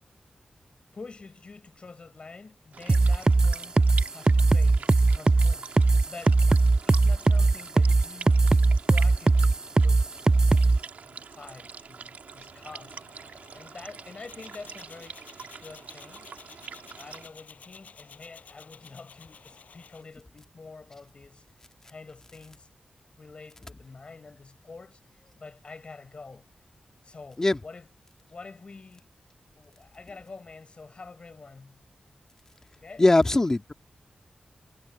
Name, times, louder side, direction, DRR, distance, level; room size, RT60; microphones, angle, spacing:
voice 1, 0.9-3.8 4.1-5.8 6.1-6.4 6.9-8.4 8.9-10.7 11.0-15.2 15.6-16.3 17.0-21.4 21.8-22.7 23.1-25.0 25.4-26.5 27.0-27.9 28.3-29.1 29.5-31.8 32.7-33.0, left 4 dB, 45° left, 6.1 m, -47 dB
sound 1, 2.7-17.3, right 6 dB, 80° right, 1.9 m, -44 dB
sound 2, 2.9-10.8, right 3 dB, 25° right, 0.3 m, -19 dB
sound 3, 12.2-20.0, left 6 dB, 80° left, 6.4 m, -52 dB
voice 2, 33.0-33.7, left 2 dB, 20° left, 1.8 m, -20 dB
wide cardioid pair, 130°, 3 cm